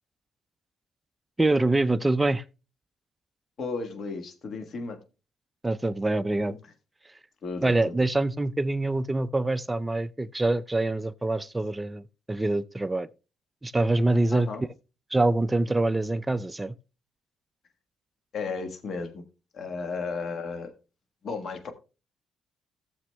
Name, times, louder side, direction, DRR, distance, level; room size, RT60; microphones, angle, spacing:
voice 1, 1.4-2.4 5.6-6.6 7.6-13.1 13.6-14.5 15.1-16.7, right 2 dB, 15° right, 0.5 m, -25 dB
voice 2, 3.6-5.0 7.4-8.0 14.3-14.6 18.3-19.2 19.5-20.7 21.2-21.7, left 4 dB, 55° left, 1.4 m, -34 dB
16.0 x 7.0 x 2.2 m
cardioid pair, 90°, 0 cm